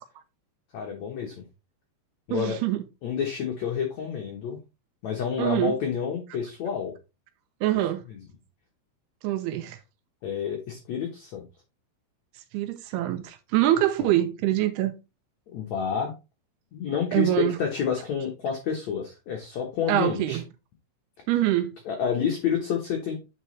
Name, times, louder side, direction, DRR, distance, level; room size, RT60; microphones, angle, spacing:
voice 1, 0.7-1.4 2.3-2.6 3.0-4.6 5.0-6.9 8.1-8.2 10.2-11.5 14.0-14.1 15.5-16.1 16.7-20.4 21.8-23.1, left 7 dB, 80° left, 1.6 m, -29 dB
voice 2, 2.3-2.8 5.4-5.7 7.6-8.0 9.2-9.8 12.5-15.0 17.1-17.6 19.9-20.4 21.3-21.8, right 13 dB, 80° right, 2.5 m, -24 dB
8.9 x 4.2 x 3.1 m
omnidirectional pair, 4.9 m